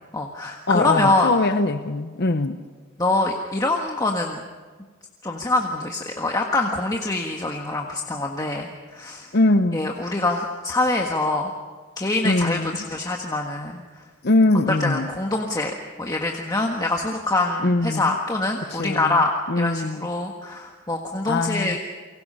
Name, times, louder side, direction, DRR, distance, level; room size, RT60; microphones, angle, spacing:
voice 1, 0.1-1.3 3.0-4.4 5.2-9.3 9.7-11.5 12.0-13.8 14.7-19.3 19.6-21.8, left 2 dB, 20° left, 1 dB, 1.5 m, -24 dB
voice 2, 0.7-2.6 9.3-9.9 12.2-12.8 14.2-15.1 17.6-18.1 18.7-19.2 19.5-20.1 21.3-21.8, left 2 dB, 55° left, 9 dB, 0.9 m, -22 dB
29.5 x 23.5 x 5.6 m, 1.4 s
head